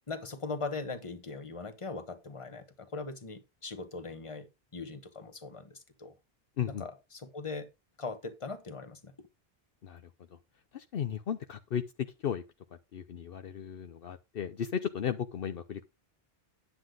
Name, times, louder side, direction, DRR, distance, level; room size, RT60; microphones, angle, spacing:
voice 1, 0.1-5.7 6.0-6.1 6.7-7.7 8.0-9.1, left 3 dB, 30° left, 1.3 m, -40 dB
voice 2, 10.7-12.4 12.9-15.8, left 8 dB, 65° left, 0.9 m, -35 dB
9.9 x 7.8 x 3.8 m
omnidirectional pair, 1.0 m